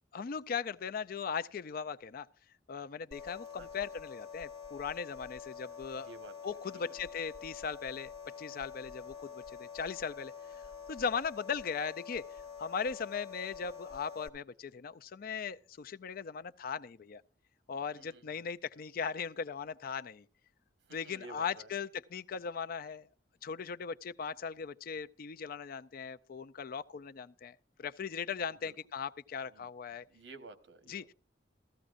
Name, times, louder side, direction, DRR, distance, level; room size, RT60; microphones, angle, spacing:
voice 1, 0.1-2.3 2.7-6.1 6.4-8.1 8.4-10.3 10.9-12.2 12.6-17.2 17.7-20.3 20.9-23.1 23.4-30.0 30.9-31.1, left 6 dB, 55° left, 0.4 m, -38 dB
sound 1, 3.1-14.3, left 7 dB, 30° left, 2.0 m, -47 dB
voice 2, 5.9-7.0 17.9-18.2 20.9-21.7 28.6-28.8 29.4-29.7 30.1-31.1, right 3 dB, 90° right, 1.2 m, -53 dB
15.0 x 14.5 x 2.5 m
head